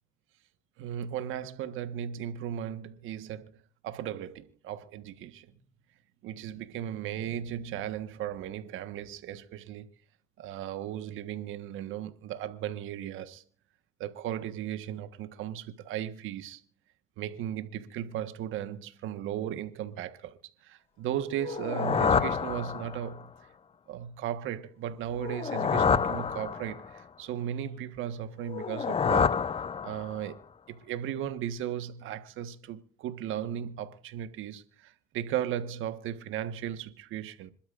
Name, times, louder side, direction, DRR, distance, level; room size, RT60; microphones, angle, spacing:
voice 1, 0.8-3.5 3.8-5.5 6.2-9.9 10.4-13.4 14.0-16.6 17.2-20.4 20.6-23.3 23.9-29.4 29.8-37.5, right 10 dB, 70° right, 1.5 m, -36 dB
sound 1, 21.4-23.2 25.1-27.0 28.5-30.3, left 6 dB, 30° left, 0.5 m, -28 dB
26.5 x 12.0 x 2.6 m
supercardioid pair, 75°, 21 cm